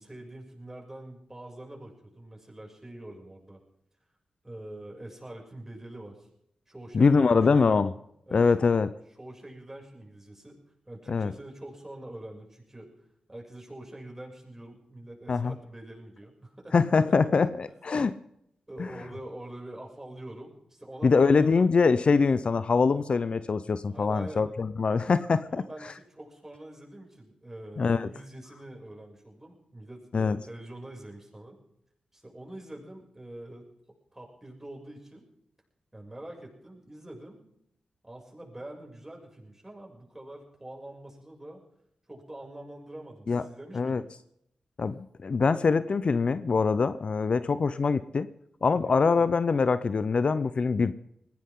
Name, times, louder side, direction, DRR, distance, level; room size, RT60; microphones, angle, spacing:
voice 1, 0.0-3.6 4.4-6.3 6.7-7.4 8.3-8.8 9.2-12.9 13.3-16.8 17.1-17.5 18.7-21.5 23.9-24.5 25.5-31.6 32.1-33.7 34.1-35.3 35.9-37.5 38.0-41.6 42.1-44.2 48.7-49.0, right 1 dB, 15° right, -1 dB, 7.0 m, -45 dB
voice 2, 6.9-7.9 8.3-8.9 11.1-11.3 15.3-15.6 16.7-18.2 18.8-18.9 21.0-25.6 27.8-28.1 30.1-30.4 43.3-43.4 43.7-44.0 44.8-48.3 48.6-50.9, left 4 dB, 55° left, 14 dB, 0.7 m, -23 dB
20.5 x 16.5 x 3.8 m, 0.75 s
cardioid pair, 50°, 2 cm